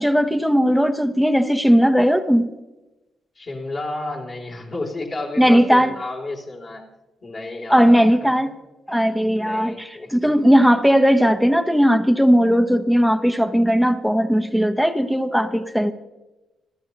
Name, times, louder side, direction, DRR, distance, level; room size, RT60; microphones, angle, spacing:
voice 1, 0.0-2.5 5.4-6.0 7.7-8.5 8.9-15.9, equal, ahead, 8 dB, 0.9 m, -17 dB
voice 2, 3.3-6.9 7.2-8.3 8.9-10.1, left 2 dB, 40° left, -1 dB, 2.8 m, -32 dB
26.0 x 14.5 x 2.9 m, 1.1 s
cardioid pair, 110°, 0 cm